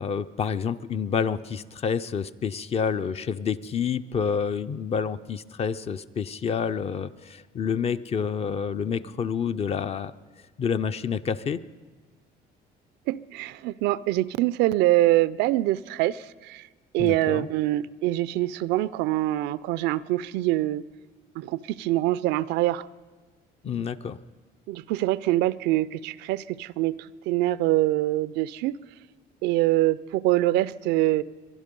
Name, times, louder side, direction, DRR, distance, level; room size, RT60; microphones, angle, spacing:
voice 1, 0.0-10.1 10.6-11.6 17.0-17.5 23.6-24.2, left 6 dB, 35° left, 13 dB, 0.5 m, -28 dB
voice 2, 13.1-16.7 16.9-20.8 21.4-22.9 24.7-28.8 29.4-31.2, right 16 dB, 90° right, 18 dB, 0.4 m, -24 dB
23.0 x 11.0 x 5.3 m, 1.4 s
cardioid pair, 110°, 17 cm